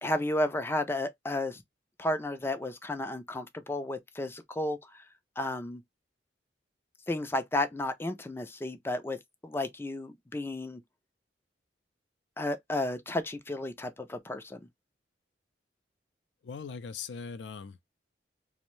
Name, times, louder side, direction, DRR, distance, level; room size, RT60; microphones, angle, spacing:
voice 1, 0.0-1.6 2.0-5.1 5.4-5.8 7.1-9.2 9.4-10.8 12.4-14.6, left 1 dB, 15° left, 0.4 m, -32 dB
voice 2, 16.4-17.8, left 5 dB, 80° left, 0.4 m, -40 dB
2.6 x 2.1 x 3.0 m
head